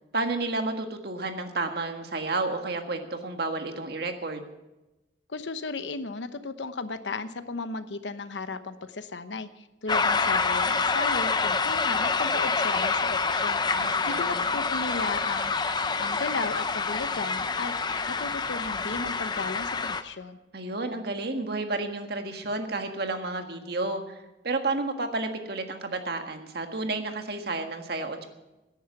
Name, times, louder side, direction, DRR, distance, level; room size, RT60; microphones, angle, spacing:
voice 1, 0.1-4.4 13.7-14.4 20.5-28.3, right 2 dB, 60° right, 5 dB, 1.6 m, -31 dB
voice 2, 5.3-13.6 14.1-17.7 18.1-20.4, left 3 dB, 80° left, 11 dB, 0.9 m, -35 dB
sound 1, 9.9-20.0, left 4 dB, 25° left, 0.7 m, -27 dB
17.5 x 10.0 x 6.0 m, 1.0 s
head